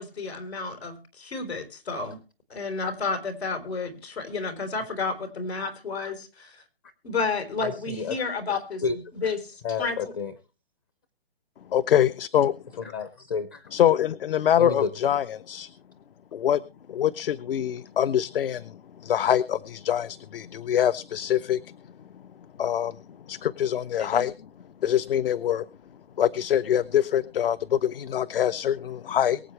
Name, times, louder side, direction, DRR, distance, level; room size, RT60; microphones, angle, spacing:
voice 1, 0.0-2.2 2.5-6.6 7.0-8.8 9.1-10.0 24.0-24.2, left 4 dB, 85° left, 7 dB, 4.1 m, -31 dB
voice 2, 7.6-8.1 8.8-9.0 9.6-10.3 12.9-13.7 14.6-14.9, left 5 dB, 20° left, 13 dB, 0.5 m, -30 dB
voice 3, 11.7-12.8 13.7-15.7 16.3-16.6 16.9-21.7 22.6-23.0 23.3-24.3 24.8-25.7 26.2-29.4, left 10 dB, 65° left, 16 dB, 0.7 m, -24 dB
23.0 x 7.9 x 3.2 m, 0.33 s
hypercardioid pair, 160°, 31 cm